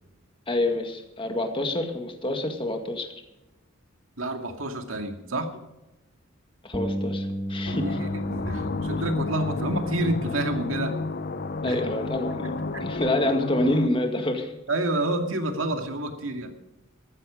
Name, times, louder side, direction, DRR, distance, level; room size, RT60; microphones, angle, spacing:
voice 1, 0.5-3.1 6.6-7.8 11.6-12.5 12.8-14.5, left 1 dB, 25° left, 4 dB, 2.0 m, -27 dB
voice 2, 4.2-5.6 7.7-11.0 11.6-11.8 12.4-12.8 14.7-16.5, right 1 dB, 80° right, 4 dB, 2.3 m, -29 dB
Bass guitar, 6.7-13.0, equal, 5° right, 1.4 m, -35 dB
sound 1, 7.6-13.9, left 3 dB, 50° left, 0.7 m, -31 dB
14.5 x 14.0 x 5.1 m, 0.95 s
head